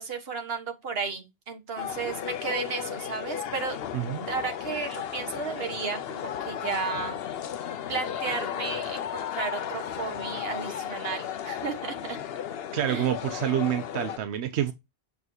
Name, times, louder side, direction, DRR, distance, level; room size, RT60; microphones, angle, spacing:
voice 1, 0.0-3.8 4.3-7.2 7.9-12.2 12.9-13.1, right 5 dB, 65° right, 1.6 m, -33 dB
sound 1, 1.8-14.2, left 9 dB, 70° left, 0.8 m, -34 dB
voice 2, 3.9-4.3 12.7-14.7, right 11 dB, 90° right, 0.9 m, -27 dB
7.2 x 6.3 x 2.8 m
omnidirectional pair, 1.1 m